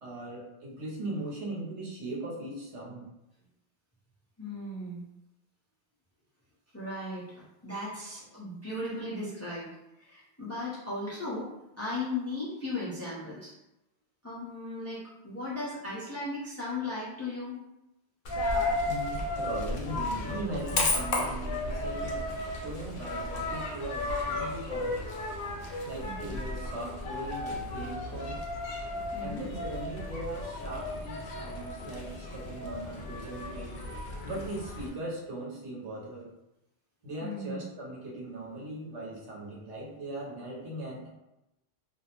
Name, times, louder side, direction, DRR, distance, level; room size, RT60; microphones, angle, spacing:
voice 1, 0.0-3.1 18.8-22.3 22.6-25.2 25.8-28.4 29.2-33.8 34.2-36.3 37.0-41.1, right 1 dB, 80° right, -4 dB, 1.1 m, -39 dB
voice 2, 4.4-5.0 6.7-9.7 10.0-11.5 11.8-13.5 14.2-17.6 26.0-26.4 28.7-28.8 29.1-29.4 37.2-37.6, left 2 dB, 15° left, -8 dB, 0.6 m, -37 dB
Coin (dropping), 18.2-34.9, left 2 dB, 60° left, 0.7 m, -34 dB
2.5 x 2.0 x 2.8 m, 0.92 s
omnidirectional pair, 1.2 m